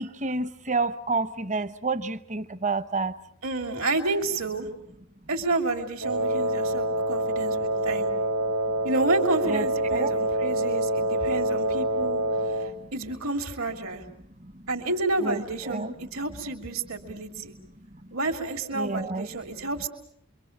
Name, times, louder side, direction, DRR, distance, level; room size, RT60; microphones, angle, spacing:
voice 1, 0.0-3.1 9.5-10.1 15.2-15.9 18.7-19.3, right 3 dB, 35° right, 1.0 m, -29 dB
voice 2, 3.4-4.7 5.3-8.1 8.8-12.2 12.9-14.0 14.7-17.5 18.1-19.9, right 2 dB, 70° right, 3.1 m, -30 dB
Wind instrument woodwind instrument, 6.0-12.8, right 1 dB, 90° right, 2.3 m, -26 dB
28.5 x 24.0 x 7.3 m
head